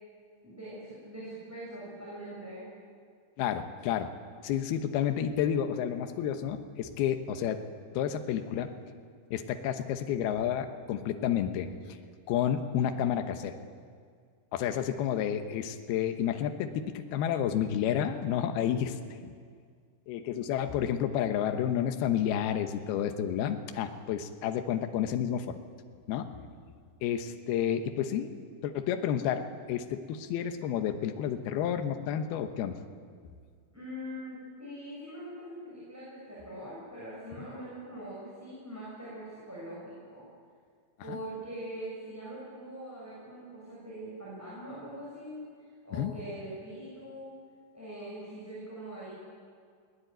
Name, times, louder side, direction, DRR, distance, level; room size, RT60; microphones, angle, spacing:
voice 1, 0.4-2.7 33.7-40.2 41.0-45.4 45.8-47.3 47.7-49.1, right 1 dB, 5° right, -7 dB, 6.7 m, -42 dB
voice 2, 3.4-4.1 4.4-7.6 7.9-8.7 9.3-11.7 12.3-13.6 14.5-19.3 20.1-25.6 26.1-26.4 27.0-28.3 28.6-32.8 41.1-41.2 45.9-46.1, left 9 dB, 70° left, 7 dB, 2.6 m, -30 dB
21.5 x 18.0 x 9.2 m, 2.1 s
omnidirectional pair, 5.5 m